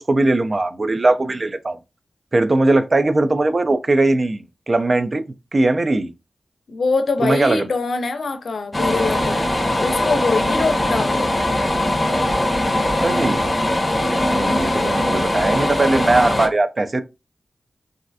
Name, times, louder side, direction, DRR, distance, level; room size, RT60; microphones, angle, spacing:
voice 1, 0.0-1.8 2.3-5.2 5.5-6.1 7.2-7.7 13.0-13.5 14.3-17.0, right 2 dB, 45° right, 0.4 m, -19 dB
voice 2, 6.7-9.5 9.8-11.2 14.3-14.9, left 4 dB, 80° left, 0.5 m, -24 dB
sound 1, 8.7-16.5, left 1 dB, 30° left, 0.8 m, -20 dB
3.1 x 2.5 x 2.6 m
cardioid pair, 55°, 0 cm